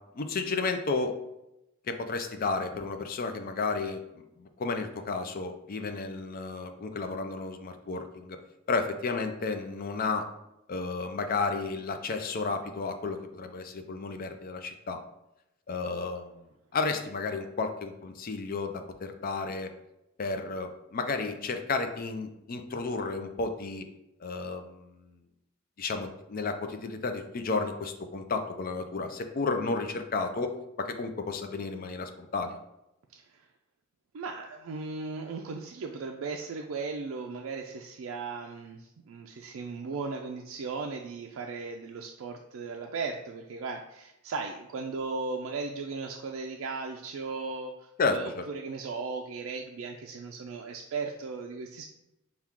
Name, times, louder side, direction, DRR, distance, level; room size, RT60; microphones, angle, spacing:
voice 1, 0.1-1.1 1.9-4.0 4.4-8.4 8.7-10.3 10.7-15.0 15.7-16.3 16.7-19.7 20.2-23.9 24.2-25.1 25.8-32.6 48.0-48.2, left 4 dB, 45° left, 7 dB, 0.4 m, -32 dB
voice 2, 33.1-33.4 34.1-51.8, right 4 dB, 75° right, 2 dB, 0.4 m, -37 dB
5.9 x 2.3 x 3.6 m, 0.89 s
head